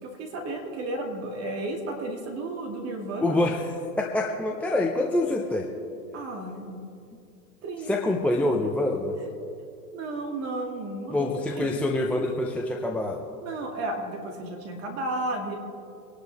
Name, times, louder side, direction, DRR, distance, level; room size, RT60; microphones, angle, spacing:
voice 1, 0.0-3.4 6.1-6.9 7.6-8.0 9.9-11.7 13.4-15.5, right 2 dB, 30° right, 2 dB, 2.3 m, -33 dB
voice 2, 3.2-3.7 4.0-5.7 7.9-9.1 11.1-13.2, left 2 dB, 5° left, 0 dB, 0.6 m, -26 dB
24.0 x 11.5 x 3.4 m, 2.5 s
hypercardioid pair, 120°, 46 cm